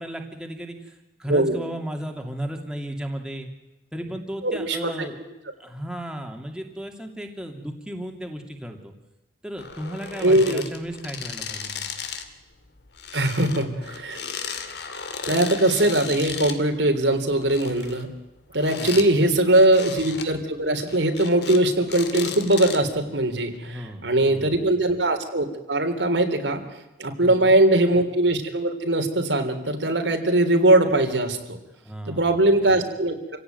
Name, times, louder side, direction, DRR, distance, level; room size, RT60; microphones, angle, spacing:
voice 1, 0.0-3.5 3.9-5.2 5.6-8.9 9.4-11.9 18.8-19.0 23.6-24.6 27.2-27.6 31.8-32.5, equal, 5° right, 2 dB, 2.7 m, -35 dB
voice 2, 4.4-5.1 10.2-10.6 13.1-14.2 15.3-18.1 18.5-26.6 27.0-31.6 32.1-33.2, right 1 dB, 80° right, 5 dB, 3.4 m, -21 dB
sound 1, 9.6-12.3 12.6-16.6 17.2-19.1 19.5-20.3 20.7-21.6 21.9-23.0 23.5-23.6, left 6 dB, 65° left, 2.3 m, -35 dB
27.5 x 17.0 x 9.4 m, 1.0 s
head